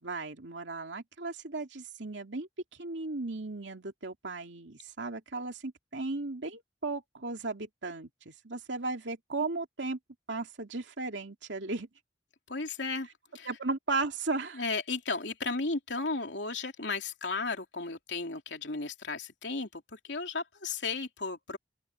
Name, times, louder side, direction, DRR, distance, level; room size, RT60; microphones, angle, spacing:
voice 1, 0.0-2.5 2.8-10.0 10.3-11.9 13.5-14.6, right 3 dB, 90° right, 2.6 m, -36 dB
voice 2, 12.5-13.1 13.3-13.5 14.5-21.6, left 3 dB, 80° left, 3.2 m, -34 dB
open air
head